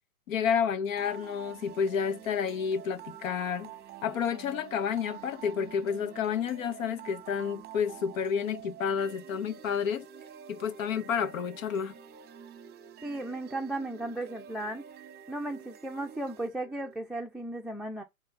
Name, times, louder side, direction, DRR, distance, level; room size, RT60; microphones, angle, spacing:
voice 1, 0.3-3.7 4.0-10.1 10.5-11.9, left 7 dB, 65° left, 1.6 m, -30 dB
sound 1, 1.0-17.0, right 9 dB, 20° right, 1.2 m, -48 dB
voice 2, 13.0-14.8 15.3-18.0, right 2 dB, ahead, 0.6 m, -35 dB
8.7 x 3.5 x 5.5 m
hypercardioid pair, 125°, 43 cm